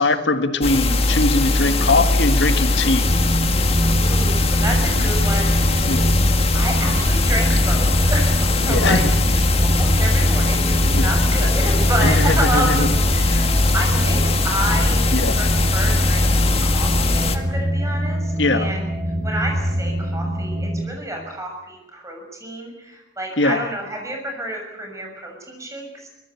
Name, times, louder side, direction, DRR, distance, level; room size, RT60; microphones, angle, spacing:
voice 1, 0.0-3.1 5.9-6.2 8.7-9.1 10.9-11.1 12.0-12.9 15.1-15.4 18.4-18.7 23.4-23.6, left 2 dB, 75° left, 9 dB, 1.6 m, -21 dB
sound 1, 0.6-17.4, left 2 dB, 35° left, 1.7 m, -20 dB
voice 2, 1.4-2.0 4.0-6.2 6.5-9.0 9.3-18.9 19.2-26.1, right 1 dB, 15° right, 2 dB, 6.6 m, -29 dB
sound 2, 3.0-20.8, equal, 60° right, 7.9 m, -23 dB
24.0 x 19.0 x 8.4 m, 1.0 s
head